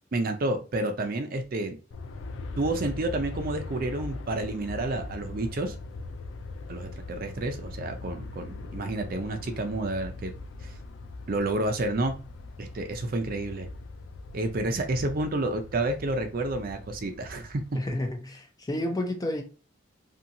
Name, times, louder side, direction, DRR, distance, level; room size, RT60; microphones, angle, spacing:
voice 1, 0.1-1.8 2.6-5.8 6.7-10.3 10.6-10.7 11.3-12.1 12.6-13.7 14.3-17.6, right 2 dB, 50° right, 0.5 m, -30 dB
Aircraft, 1.9-18.1, left 3 dB, 80° left, 0.4 m, -41 dB
voice 2, 17.8-19.4, left 1 dB, 20° left, 0.5 m, -30 dB
2.7 x 2.7 x 2.6 m
head